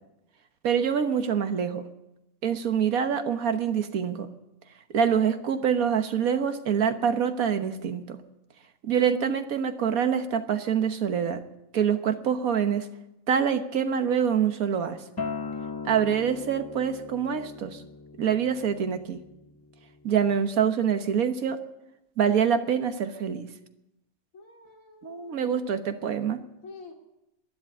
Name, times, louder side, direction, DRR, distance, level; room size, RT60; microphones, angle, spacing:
voice 1, 0.6-1.8 2.4-4.3 4.9-8.2 8.8-11.4 11.7-12.9 13.3-15.0 15.9-17.8 18.2-19.2 20.0-21.6 22.2-23.5 25.0-26.4, right 7 dB, 80° right, 8 dB, 1.6 m, -25 dB
Acoustic guitar, 15.2-20.4, left 4 dB, 40° left, 0.3 m, -39 dB
voice 2, 24.3-25.6 26.6-26.9, left 4 dB, 70° left, 0 dB, 3.1 m, -47 dB
12.0 x 11.0 x 10.0 m, 0.90 s
omnidirectional pair, 1.5 m